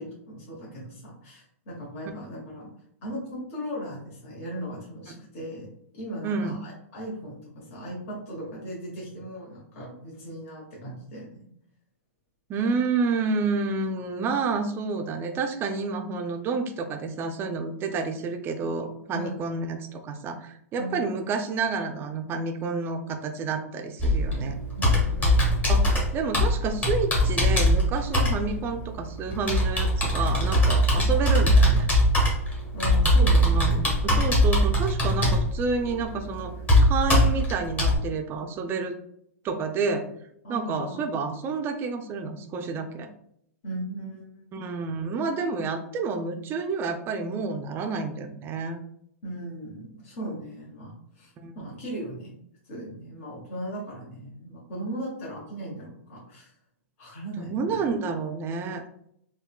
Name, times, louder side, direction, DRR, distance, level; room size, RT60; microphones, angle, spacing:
voice 1, 0.0-2.7 3.0-5.7 5.9-11.5 19.1-19.6 20.8-21.0 24.8-25.6 32.7-33.6 40.4-41.0 43.6-44.6 49.2-52.3 52.7-56.5 57.0-57.8, right 1 dB, 55° left, -5 dB, 1.1 m, -37 dB
voice 2, 6.2-6.6 12.5-24.6 25.7-31.9 33.3-36.6 36.8-38.9 39.4-40.1 40.5-43.1 44.5-48.8 51.4-51.5 57.4-58.8, right 4 dB, 30° right, 6 dB, 0.4 m, -29 dB
Computer keyboard, 24.0-38.0, equal, 20° left, 1.0 m, -22 dB
3.6 x 2.2 x 2.2 m, 0.72 s
hypercardioid pair, 115°, 8 cm